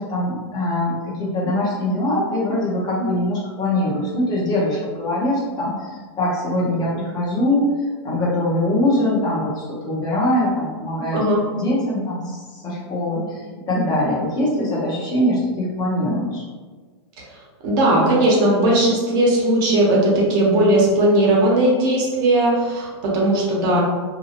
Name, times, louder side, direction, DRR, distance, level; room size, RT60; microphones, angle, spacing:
voice 1, 0.0-7.7 8.0-11.2 11.5-13.4 13.7-16.4, left 1 dB, 30° left, -5 dB, 0.9 m, -22 dB
voice 2, 17.6-23.8, right 1 dB, 50° right, -4 dB, 1.0 m, -18 dB
2.7 x 2.3 x 2.8 m, 1.4 s
hypercardioid pair, 120°, 15 cm